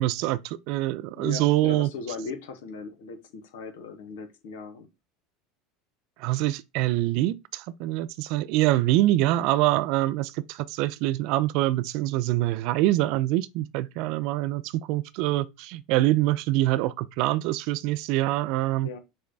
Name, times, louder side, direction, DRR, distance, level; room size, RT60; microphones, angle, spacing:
voice 1, 0.0-1.9 6.2-18.9, right 16 dB, 55° right, 0.4 m, -25 dB
voice 2, 1.2-4.9 18.8-19.0, left 5 dB, 65° left, 1.0 m, -38 dB
6.2 x 2.1 x 3.9 m
figure-of-eight pair, 75°, 0 cm